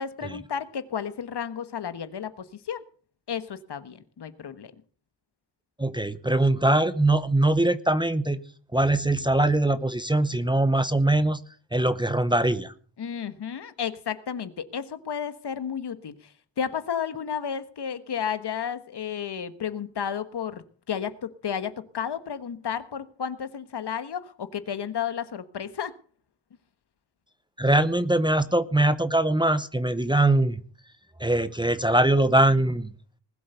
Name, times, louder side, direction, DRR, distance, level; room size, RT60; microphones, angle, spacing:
voice 1, 0.0-2.8 3.3-4.7 13.0-16.3 16.6-25.9, left 8 dB, 65° left, 12 dB, 1.4 m, -32 dB
voice 2, 5.8-8.4 8.7-11.4 11.7-12.7 27.6-30.6 31.2-32.9, right 1 dB, 10° right, 13 dB, 0.7 m, -22 dB
20.0 x 7.9 x 6.8 m, 0.43 s
wide cardioid pair, 150°, 43 cm